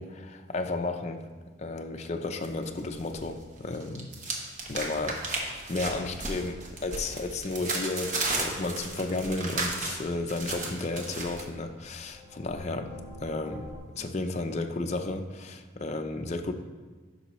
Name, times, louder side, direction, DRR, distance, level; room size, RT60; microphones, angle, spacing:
voice 1, 0.0-1.3 1.6-16.5, left 2 dB, 35° left, 5 dB, 0.5 m, -33 dB
sound 1, 2.4-3.3 3.6-11.4, right 2 dB, 40° right, 1.1 m, -34 dB
sound 2, 8.5-13.8, left 2 dB, 65° right, 1.8 m, -48 dB
10.0 x 6.0 x 3.1 m, 1.4 s
head